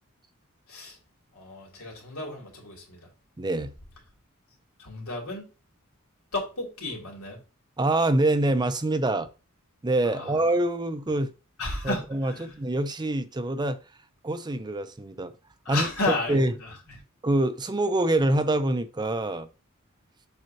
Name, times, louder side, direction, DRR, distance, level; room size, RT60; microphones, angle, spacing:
voice 1, 1.3-3.1 4.8-5.4 6.3-7.4 10.0-10.3 11.6-12.5 15.6-16.7, left 2 dB, 90° left, 3.1 m, -32 dB
voice 2, 3.4-3.7 7.8-9.3 9.8-11.3 11.8-13.8 14.2-15.3 15.7-15.9 16.3-16.5 17.2-19.5, right 2 dB, 20° right, 0.6 m, -25 dB
7.6 x 5.6 x 2.8 m
head